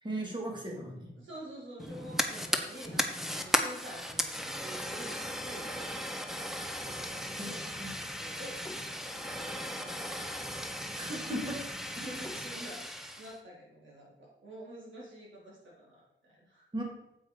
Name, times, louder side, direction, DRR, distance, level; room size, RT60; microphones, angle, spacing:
voice 1, 0.0-1.1 7.4-7.5 7.8-7.9 10.9-11.4 16.7-16.8, right 1 dB, 20° right, -1 dB, 2.9 m, -37 dB
voice 2, 1.1-6.3 6.8-7.7 7.9-8.6 9.1-11.6 12.0-16.7, right 1 dB, 65° right, -4 dB, 4.3 m, -48 dB
Fire, 1.8-13.4, equal, ahead, 1.0 m, -36 dB
8.8 x 7.9 x 5.1 m, 0.87 s
wide cardioid pair, 115°, 20 cm